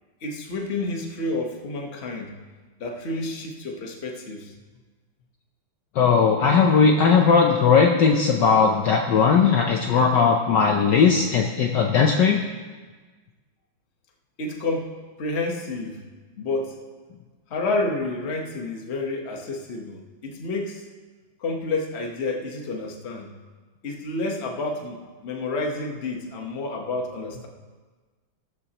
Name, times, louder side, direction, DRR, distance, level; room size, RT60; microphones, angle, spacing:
voice 1, 0.2-2.4 2.8-4.5 14.4-16.0 16.4-16.7 17.5-20.8 21.4-23.3 23.8-27.5, left 2 dB, 35° left, 2 dB, 1.2 m, -29 dB
voice 2, 6.0-12.4, left 5 dB, 65° left, 2 dB, 1.3 m, -18 dB
15.5 x 13.5 x 3.0 m, 1.4 s
omnidirectional pair, 2.4 m